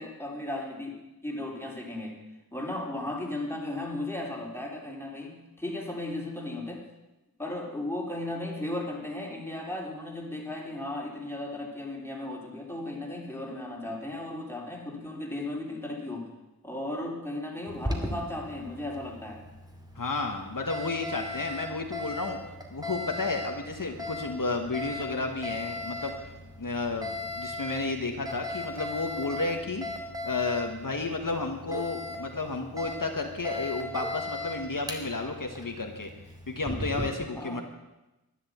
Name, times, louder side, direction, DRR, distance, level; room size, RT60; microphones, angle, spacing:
voice 1, 0.0-2.2 2.5-6.9 7.4-16.3 16.6-19.4 37.3-37.6, left 1 dB, 5° left, -1 dB, 3.5 m, -36 dB
Alarm, 17.7-37.0, left 1 dB, 10° right, 2.5 m, -38 dB
voice 2, 19.9-22.4 22.7-26.3 26.6-29.9 30.2-36.1 36.5-37.6, left 3 dB, 60° left, 3 dB, 1.7 m, -32 dB
12.0 x 11.0 x 8.2 m, 1.0 s
wide cardioid pair, 60°, 37 cm